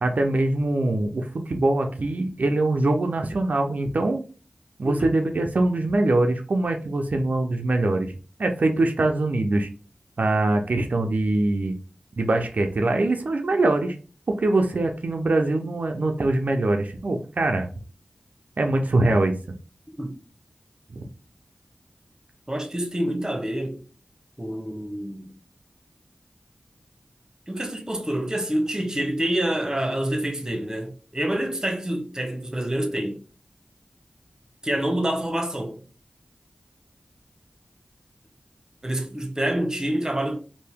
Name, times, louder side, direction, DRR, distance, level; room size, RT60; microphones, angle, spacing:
voice 1, 0.0-4.2 4.8-9.7 10.2-11.8 12.2-14.0 14.3-17.7 18.6-19.3 20.9-21.1, right 2 dB, 70° right, 0.4 m, -23 dB
voice 2, 22.5-23.8 24.4-25.3 27.5-33.2 34.6-35.8 38.8-40.4, right 1 dB, 25° right, 0.9 m, -27 dB
2.7 x 2.6 x 3.4 m
wide cardioid pair, 50°, 3 cm